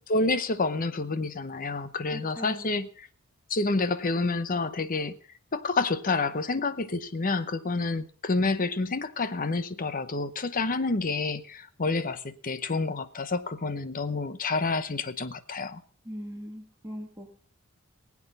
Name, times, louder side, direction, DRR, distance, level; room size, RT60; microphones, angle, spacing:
voice 1, 0.0-2.9 3.5-5.2 5.5-15.8, left 3 dB, 40° left, 0.9 m, -28 dB
voice 2, 2.1-2.7 16.0-17.3, equal, 15° right, 1.6 m, -40 dB
20.5 x 8.6 x 5.4 m
head